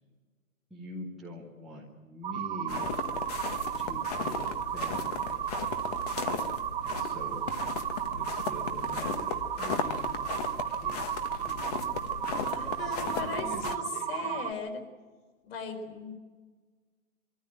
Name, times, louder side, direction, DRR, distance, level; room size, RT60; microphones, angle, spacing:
voice 1, 0.7-2.9 3.8-5.4 6.8-7.5 7.9-10.3 10.8-12.1 12.6-14.5, equal, ahead, -3 dB, 0.6 m, -45 dB
sound 1, 2.2-14.5, right 10 dB, 35° right, 0.9 m, -34 dB
sound 2, 2.7-13.7, left 6 dB, 25° left, 1.2 m, -36 dB
voice 2, 12.4-14.8 15.4-16.1, left 5 dB, 45° left, 4 dB, 4.6 m, -38 dB
24.5 x 14.0 x 9.4 m, 1.4 s
hypercardioid pair, 160°, 43 cm